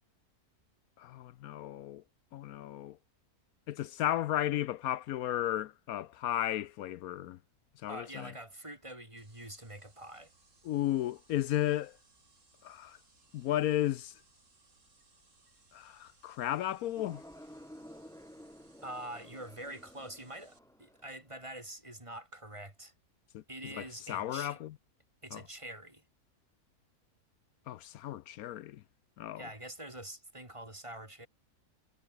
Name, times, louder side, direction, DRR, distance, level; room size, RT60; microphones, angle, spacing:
voice 1, 1.0-2.0 2.3-3.0 3.7-7.4 7.8-8.3 10.6-12.0 12.6-13.0 13.3-14.2 15.7-17.2 23.3-24.7 25.3-25.4 27.7-28.8 29.2-29.5, left 13 dB, 75° left, 1.0 m, -34 dB
voice 2, 7.9-10.3 18.8-22.9 23.5-24.6 25.2-26.0 29.4-31.3, right 1 dB, 20° right, 3.5 m, -45 dB
sound 1, 9.2-20.6, right 3 dB, 55° right, 3.6 m, -66 dB
sound 2, 17.0-21.3, equal, ahead, 1.5 m, -53 dB
omnidirectional pair, 1.6 m